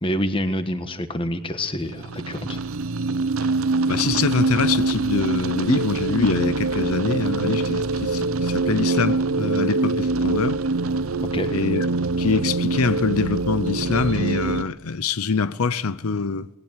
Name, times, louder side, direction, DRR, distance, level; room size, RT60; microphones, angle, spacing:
voice 1, 0.0-2.6 11.3-11.5, equal, 25° left, 1.4 m, -27 dB
sound 1, 1.8-14.6, right 3 dB, 80° right, 0.8 m, -24 dB
voice 2, 3.9-10.6 11.5-11.9 12.2-16.5, left 4 dB, 90° left, 0.7 m, -24 dB
19.5 x 18.5 x 9.0 m
head